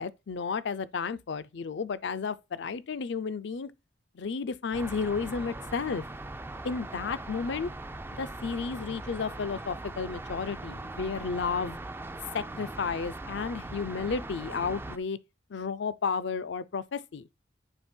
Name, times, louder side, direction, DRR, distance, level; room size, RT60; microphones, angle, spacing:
voice 1, 0.0-3.7 4.1-6.0 6.6-7.7 8.1-11.8 12.3-15.2 15.5-17.2, left 5 dB, 65° left, 0.5 m, -32 dB
sound 1, 4.7-15.0, right 2 dB, 10° right, 0.3 m, -40 dB
9.0 x 3.3 x 4.4 m
head